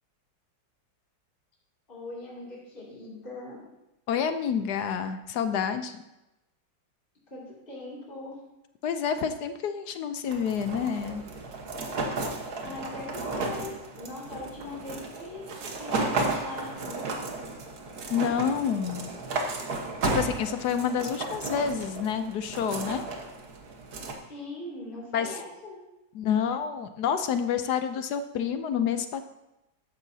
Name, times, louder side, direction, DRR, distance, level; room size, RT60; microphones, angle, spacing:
voice 1, 1.9-3.7 7.3-8.4 12.6-15.4 15.8-17.2 24.3-25.8, left 2 dB, 25° left, -5 dB, 2.8 m, -40 dB
voice 2, 4.1-6.0 8.8-11.2 18.1-19.1 20.0-23.0 25.1-25.4 26.1-29.2, left 7 dB, 70° left, 9 dB, 1.1 m, -28 dB
sound 1, 10.3-24.1, right 3 dB, 55° right, 1.7 m, -34 dB
13.0 x 10.0 x 2.7 m, 0.95 s
omnidirectional pair, 2.0 m